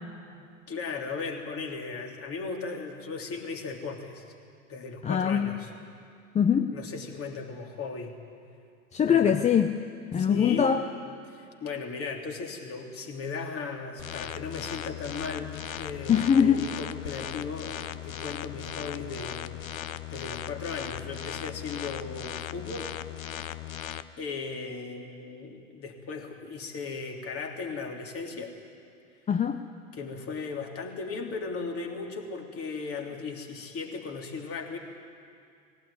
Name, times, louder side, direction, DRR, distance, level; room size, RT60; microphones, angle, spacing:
voice 1, 0.7-4.2 4.7-5.7 6.7-8.2 9.1-9.4 10.1-10.8 11.3-19.6 20.1-22.9 23.5-23.6 24.2-28.5 29.9-34.8, left 4 dB, 35° left, 2 dB, 3.2 m, -37 dB
voice 2, 5.0-5.5 6.3-6.7 8.9-9.7 10.1-10.8 16.1-16.6 29.3-29.6, left 8 dB, 15° left, 7 dB, 0.7 m, -22 dB
sound 1, 14.0-24.0, left 11 dB, 75° left, 1.0 m, -38 dB
19.0 x 17.0 x 9.7 m, 2.4 s
hypercardioid pair, 95°, 41 cm